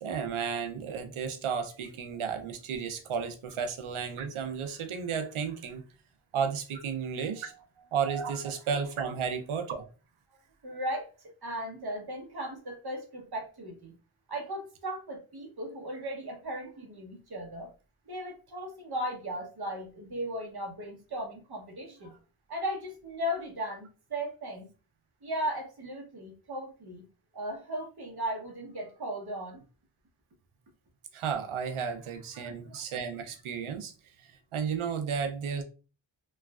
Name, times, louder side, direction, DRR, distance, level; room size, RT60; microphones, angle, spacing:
voice 1, 0.0-5.8 6.3-7.5 7.9-9.9 31.1-33.9 34.2-35.6, right 6 dB, 85° right, 0.6 m, -33 dB
voice 2, 10.6-11.1 11.4-13.9 14.3-17.7 18.1-22.2 22.5-24.7 25.2-27.0 27.3-29.6 32.3-32.5, equal, 50° right, 0.9 m, -37 dB
3.1 x 2.3 x 2.3 m
wide cardioid pair, 75°, 48 cm